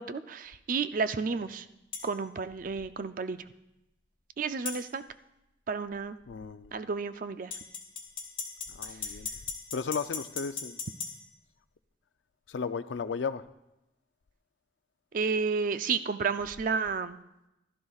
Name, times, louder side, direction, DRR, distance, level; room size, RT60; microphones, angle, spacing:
voice 1, 0.0-1.7 2.0-3.4 4.4-5.0 5.7-6.2 6.7-7.5 15.1-17.2, right 5 dB, 50° right, 12 dB, 0.4 m, -31 dB
sound 1, 1.9-2.1 4.7-4.8 7.5-11.1, left 6 dB, 30° left, 1.7 m, -37 dB
voice 2, 6.3-6.7 8.7-9.3 9.7-10.8 12.5-13.4, left 5 dB, 85° left, 13 dB, 0.5 m, -34 dB
15.0 x 12.5 x 2.4 m, 0.91 s
head